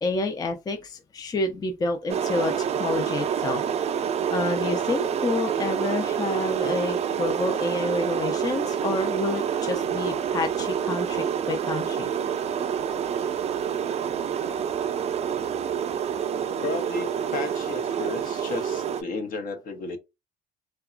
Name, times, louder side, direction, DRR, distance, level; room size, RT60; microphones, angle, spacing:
voice 1, 0.0-3.6 4.3-12.1, left 3 dB, 20° left, 0.4 m, -29 dB
sound 1, 2.1-19.0, right 8 dB, 40° right, 0.4 m, -27 dB
voice 2, 16.6-20.0, left 3 dB, 55° left, 0.7 m, -33 dB
2.8 x 2.2 x 2.4 m
cardioid pair, 110°, 17 cm